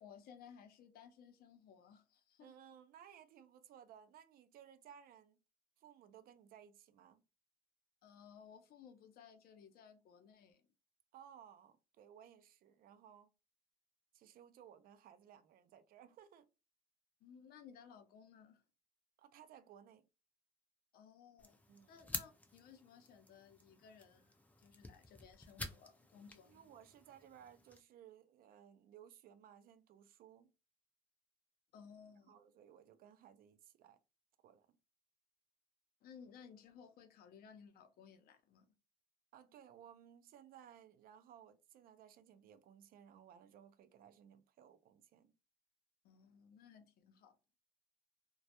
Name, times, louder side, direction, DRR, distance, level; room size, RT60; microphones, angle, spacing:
voice 1, 0.0-2.5 8.0-10.6 17.2-18.6 20.9-21.6 21.9-26.7 31.7-32.4 36.0-38.7 46.0-47.4, left 7 dB, 65° left, 0.6 m, -59 dB
voice 2, 2.4-5.4 5.8-7.2 11.1-13.3 14.1-16.5 19.2-20.1 21.7-21.9 26.4-30.5 32.3-34.0 34.4-34.8 39.3-45.3, right 9 dB, 60° right, 0.4 m, -60 dB
sound 1, 21.4-27.8, left 2 dB, 10° left, 0.4 m, -50 dB
2.2 x 2.0 x 2.7 m
cardioid pair, 110°, 17 cm